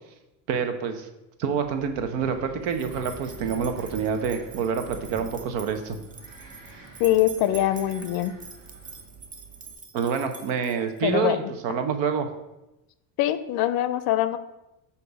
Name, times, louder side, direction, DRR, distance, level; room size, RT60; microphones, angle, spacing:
voice 1, 0.5-1.1 1.4-6.0 9.9-12.3, right 6 dB, 70° right, 8 dB, 0.9 m, -27 dB
Wind, 1.6-9.7, right 3 dB, 45° right, 1.6 m, -45 dB
sound 1, 2.7-11.0, right 5 dB, 20° right, 0.7 m, -45 dB
voice 2, 7.0-8.3 11.0-11.5 13.2-14.4, left 13 dB, 55° left, 13 dB, 0.5 m, -23 dB
6.5 x 2.7 x 5.2 m, 0.95 s
supercardioid pair, 105°, 44 cm